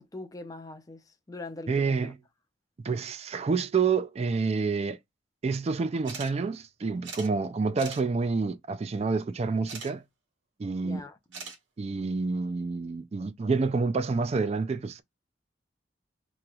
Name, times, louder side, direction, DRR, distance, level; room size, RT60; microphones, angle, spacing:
voice 1, 0.0-2.1 10.8-11.2, left 2 dB, 20° left, 0.5 m, -42 dB
voice 2, 1.7-2.2 2.8-5.0 5.4-10.0 10.6-11.0 11.8-15.0, right 4 dB, 35° right, 0.3 m, -28 dB
sound 1, 6.0-6.3 6.6-6.7 7.0-7.3 7.8-8.0 9.7-9.9 11.3-11.6, right 5 dB, 85° right, 1.4 m, -40 dB
3.0 x 2.9 x 2.2 m
head